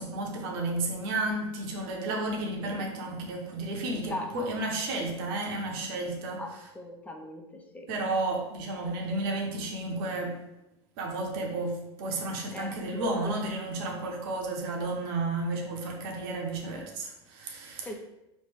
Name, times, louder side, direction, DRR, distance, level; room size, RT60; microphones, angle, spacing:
voice 1, 0.0-6.7 7.9-10.4 11.0-18.0, right 2 dB, 60° right, 0 dB, 0.8 m, -32 dB
voice 2, 6.8-7.9 12.5-13.1 17.8-18.0, left 2 dB, 10° left, 2 dB, 0.5 m, -39 dB
3.1 x 2.6 x 3.3 m, 0.92 s
hypercardioid pair, 100°, 14 cm